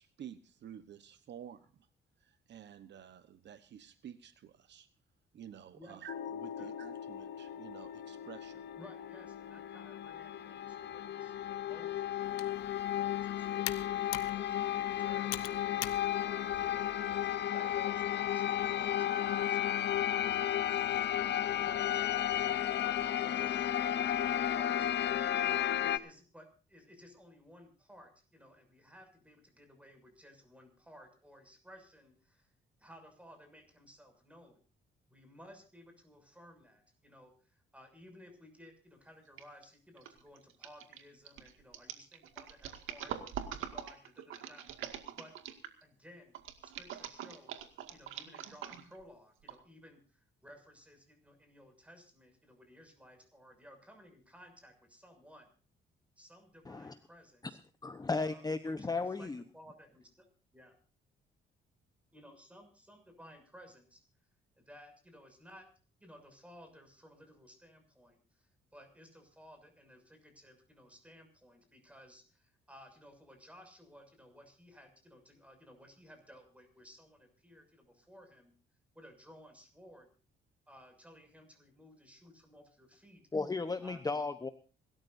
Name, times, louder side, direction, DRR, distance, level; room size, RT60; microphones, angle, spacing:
voice 1, 0.0-1.9 2.2-4.9 5.3-8.6, right 9 dB, 60° right, 12 dB, 1.1 m, -51 dB
sound 1, 6.1-26.0, left 11 dB, 60° left, 0.9 m, -34 dB
voice 2, 8.8-24.9 25.5-32.5 32.8-34.6 35.1-44.6 45.1-45.3 45.8-46.4 46.6-47.6 47.9-55.5 56.2-57.6 58.2-60.3 60.5-60.7 62.1-64.0 64.6-65.7 66.0-78.5 78.9-80.1 80.7-83.2 83.8-84.0, equal, 5° right, 5 dB, 6.6 m, -57 dB
Computer keyboard, 12.2-17.4, left 13 dB, 85° left, 1.1 m, -45 dB
sound 2, 39.4-39.6 40.0-45.8 46.3-49.0 49.5-49.6, right 9 dB, 85° right, 2.1 m, -43 dB
voice 3, 57.8-59.4 83.3-84.5, left 3 dB, 20° left, 10 dB, 1.0 m, -35 dB
26.5 x 13.5 x 2.7 m, 0.37 s
cardioid pair, 90°, 20 cm